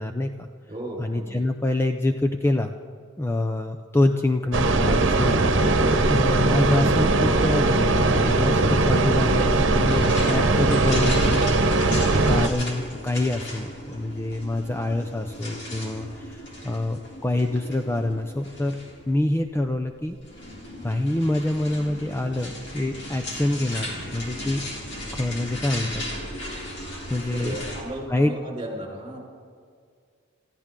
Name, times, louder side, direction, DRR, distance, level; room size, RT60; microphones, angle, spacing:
voice 1, 0.0-0.5 1.0-2.7 3.2-5.5 6.1-18.8 19.1-20.2 20.8-24.6 25.1-26.0 27.1-27.5 28.1-28.3, left 1 dB, 15° left, 5 dB, 0.6 m, -26 dB
voice 2, 0.7-1.4 5.5-6.2 27.3-29.2, right 1 dB, 30° right, -1 dB, 4.7 m, -35 dB
sound 1, 4.5-12.5, right 2 dB, 85° right, 1.0 m, -20 dB
sound 2, 9.9-27.8, left 1 dB, 65° left, 3.6 m, -36 dB
25.5 x 15.0 x 3.8 m, 2.1 s
head